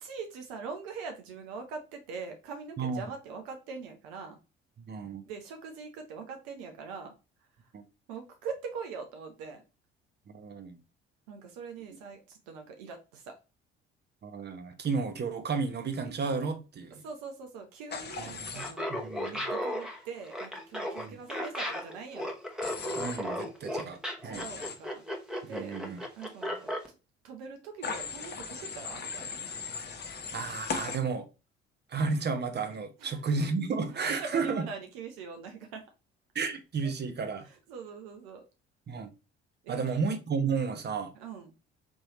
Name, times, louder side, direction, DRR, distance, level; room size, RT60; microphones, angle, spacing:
voice 1, 0.0-4.4 5.3-7.1 8.1-9.6 11.3-13.4 17.0-18.9 19.2-22.3 24.2-25.0 25.5-25.8 26.2-26.6 27.2-29.4 33.0-33.2 33.9-35.9 36.8-36.9 37.4-38.4 39.6-40.0 41.1-41.5, right 5 dB, 70° right, 0.8 m, -42 dB
voice 2, 4.9-5.2 7.7-7.8 10.3-10.8 14.2-17.0 18.2-19.3 21.1-21.2 23.0-24.4 25.4-26.0 30.3-31.3 31.9-34.7 36.3-37.5 38.9-39.1 39.7-41.1, right 4 dB, 35° right, 0.9 m, -32 dB
Human voice / Train, 17.9-18.7 22.6-23.2 24.3-24.7 27.8-31.0, left 5 dB, 35° left, 0.9 m, -38 dB
Laughter, 18.5-26.9, equal, ahead, 1.1 m, -35 dB
4.4 x 3.1 x 3.0 m
figure-of-eight pair, 50°, 31 cm